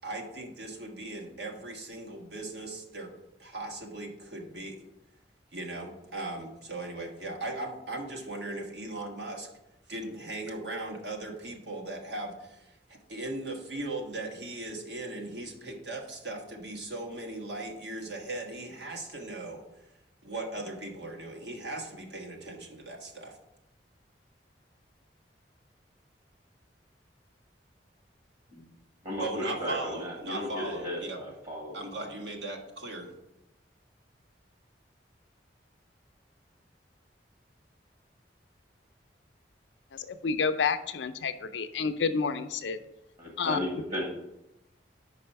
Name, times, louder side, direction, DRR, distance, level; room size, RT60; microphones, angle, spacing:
voice 1, 0.0-3.1 3.4-4.8 5.5-9.5 9.9-19.6 20.2-23.4 29.2-31.2 31.7-33.1, right 2 dB, 70° right, 2 dB, 1.3 m, -38 dB
voice 2, 29.0-32.1 43.2-44.0, left 1 dB, 45° right, -2 dB, 1.6 m, -35 dB
voice 3, 39.9-42.8 43.4-43.6, left 5 dB, 85° left, 10 dB, 0.5 m, -29 dB
5.4 x 4.8 x 5.8 m, 0.88 s
head